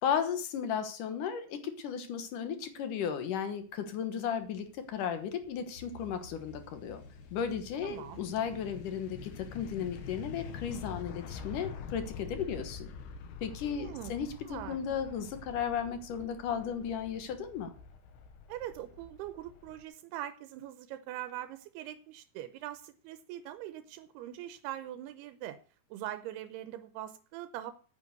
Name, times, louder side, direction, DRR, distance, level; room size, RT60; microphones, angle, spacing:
voice 1, 0.0-7.0 7.3-12.9 13.4-17.7, left 7 dB, 65° left, 9 dB, 2.4 m, -35 dB
sound 1, 4.3-19.8, left 6 dB, 85° left, 3.3 m, -47 dB
sound 2, 5.7-10.8, left 3 dB, 40° left, 2.6 m, -52 dB
voice 2, 7.8-8.2 13.6-14.1 14.4-14.8 18.5-25.6 25.9-27.7, right 12 dB, 85° right, 11 dB, 2.7 m, -42 dB
9.1 x 7.8 x 8.2 m, 0.41 s
omnidirectional pair, 4.6 m